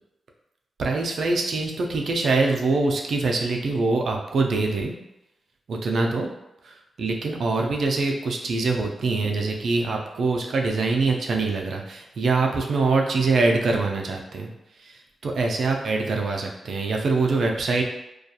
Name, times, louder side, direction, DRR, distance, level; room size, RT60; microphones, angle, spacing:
voice 1, 0.8-4.9 5.7-6.3 6.6-14.5 14.8-17.8, right 3 dB, 70° right, 1 dB, 0.4 m, -24 dB
2.3 x 2.2 x 2.7 m, 0.89 s
cardioid pair, 50°, 0 cm